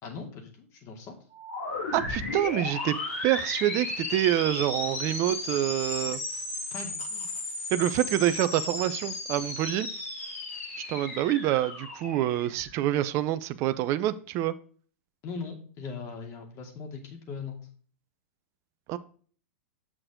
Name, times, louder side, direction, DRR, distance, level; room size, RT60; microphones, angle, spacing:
voice 1, 0.0-1.2 6.7-7.3 15.2-17.6, left 4 dB, 40° left, 2.7 m, -40 dB
sound 1, 1.3-13.0, left 2 dB, 80° left, 3.7 m, -35 dB
voice 2, 1.9-3.0 3.2-6.2 7.7-9.9 10.9-14.5 18.9-19.0, right 13 dB, 45° right, 0.7 m, -27 dB
7.8 x 6.2 x 3.8 m
hypercardioid pair, 110°, 7 cm